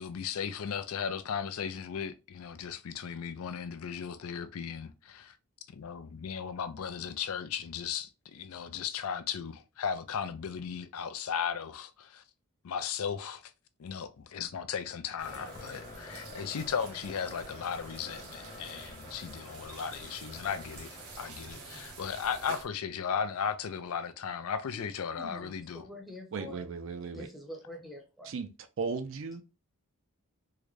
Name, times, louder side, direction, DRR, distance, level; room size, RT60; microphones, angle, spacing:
voice 1, 0.0-5.4 5.7-12.2 12.6-13.5 13.8-25.9, left 7 dB, 75° left, 0.4 m, -36 dB
sound 1, 15.2-21.7, left 2 dB, 25° left, 0.9 m, -49 dB
sound 2, 15.2-22.6, right 3 dB, 80° right, 0.9 m, -48 dB
voice 2, 21.5-21.9 24.7-26.6 27.1-28.3, left 1 dB, ahead, 0.6 m, -46 dB
voice 3, 26.3-27.3 28.2-28.5 28.8-29.4, right 4 dB, 60° right, 0.4 m, -36 dB
3.7 x 2.1 x 3.2 m
head